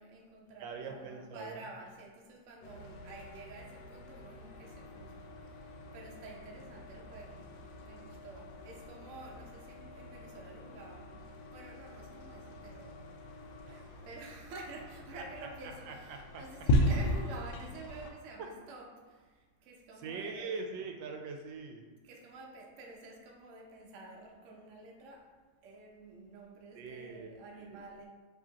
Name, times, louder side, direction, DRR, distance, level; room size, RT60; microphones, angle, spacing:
voice 1, 0.0-5.1 5.9-7.5 7.8-11.1 11.5-13.0 14.0-19.0 19.7-20.5 22.0-25.3 25.6-28.1, right 2 dB, 55° right, -1 dB, 0.9 m, -49 dB
voice 2, 0.6-1.7 13.7-14.0 15.1-15.2 15.9-16.4 17.6-17.7 18.4-18.5 20.0-21.9 26.8-27.8, right 4 dB, 85° right, 3 dB, 1.3 m, -43 dB
sound 1, 2.6-18.1, left 1 dB, 85° left, 1.3 m, -38 dB
4.9 x 3.5 x 2.8 m, 1.3 s
omnidirectional pair, 2.0 m